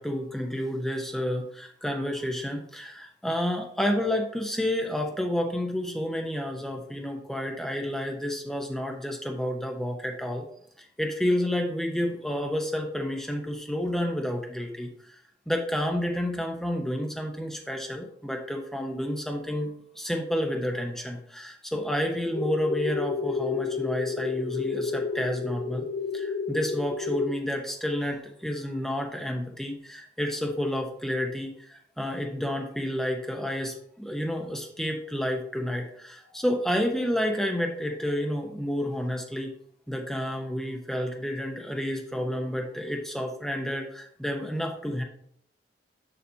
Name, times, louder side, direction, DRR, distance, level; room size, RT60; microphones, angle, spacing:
voice 1, 0.0-10.4 11.0-15.2 15.5-25.8 26.1-39.5 39.9-45.0, equal, ahead, 2 dB, 0.8 m, -30 dB
sound 1, 22.3-27.3, left 4 dB, 85° left, 0.6 m, -31 dB
6.8 x 5.9 x 2.8 m, 0.66 s
head